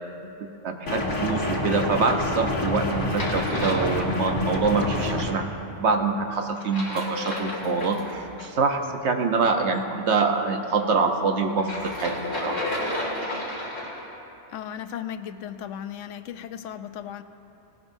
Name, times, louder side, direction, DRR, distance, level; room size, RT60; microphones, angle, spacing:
voice 1, 0.6-5.5 5.8-12.6, right 4 dB, 70° right, 5 dB, 1.2 m, -25 dB
sound 1, 0.9-5.3, left 1 dB, 75° left, 2.0 m, -27 dB
sound 2, 2.7-4.6 6.5-8.5 11.5-14.2, left 1 dB, 35° left, 1.9 m, -33 dB
voice 2, 14.5-17.2, left 9 dB, 90° left, 10 dB, 1.0 m, -36 dB
18.0 x 17.0 x 2.7 m, 2.9 s
omnidirectional pair, 1.2 m